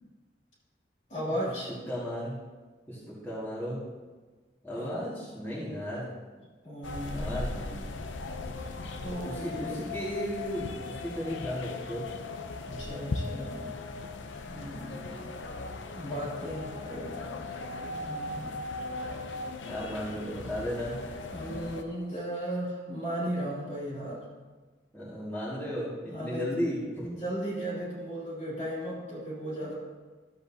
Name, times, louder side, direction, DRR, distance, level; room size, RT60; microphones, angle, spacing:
voice 1, 1.1-1.7 4.7-5.0 6.6-7.4 8.5-8.8 9.0-9.8 12.6-13.8 14.5-15.3 15.9-18.5 21.3-24.2 26.1-26.6 27.2-29.7, equal, 40° left, -5 dB, 2.7 m, -36 dB
voice 2, 1.9-2.4 2.9-3.8 4.6-6.1 7.1-7.8 9.2-12.0 12.7-12.9 19.6-21.6 24.9-27.1, equal, 10° left, -10 dB, 1.9 m, -35 dB
sound 1, 6.8-21.8, left 3 dB, 90° left, 0.7 m, -38 dB
12.5 x 7.8 x 2.8 m, 1.3 s
head